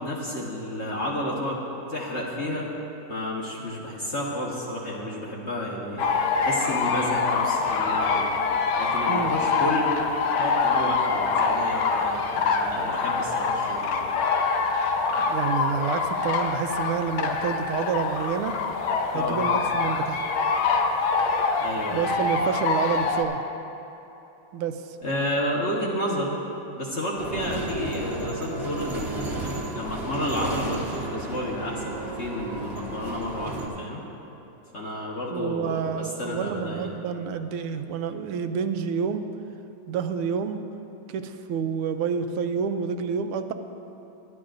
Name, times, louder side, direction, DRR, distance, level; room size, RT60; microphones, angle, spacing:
voice 1, 0.0-1.6 1.9-2.7 3.1-6.0 6.4-8.3 8.8-9.9 10.4-14.0 19.1-19.4 21.6-22.1 25.0-26.4 26.8-34.0 34.7-36.9, left 1 dB, 40° left, -4 dB, 1.2 m, -31 dB
sound 1, 6.0-23.2, left 4 dB, 75° left, 1.6 m, -25 dB
voice 2, 15.2-18.6 19.1-20.2 21.9-23.4 24.5-24.8 35.3-39.3 39.9-40.6 41.1-43.5, right 7 dB, 85° right, 8 dB, 1.5 m, -28 dB
sound 2, 27.2-33.7, right 2 dB, 35° right, 1.2 m, -33 dB
22.5 x 10.5 x 2.6 m, 3.0 s
omnidirectional pair, 2.4 m